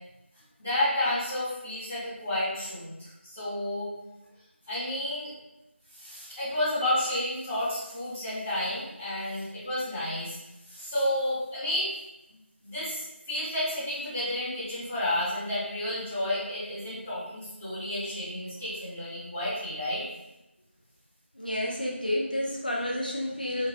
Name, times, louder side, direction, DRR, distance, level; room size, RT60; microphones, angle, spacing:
voice 1, 0.6-3.9 4.7-5.3 5.9-10.4 10.7-11.9 12.6-20.0, left 1 dB, 10° right, -16 dB, 0.6 m, -31 dB
voice 2, 21.3-23.7, left 1 dB, 45° left, -3 dB, 0.5 m, -30 dB
2.9 x 2.5 x 2.6 m, 0.95 s
figure-of-eight pair, 180°, 7 cm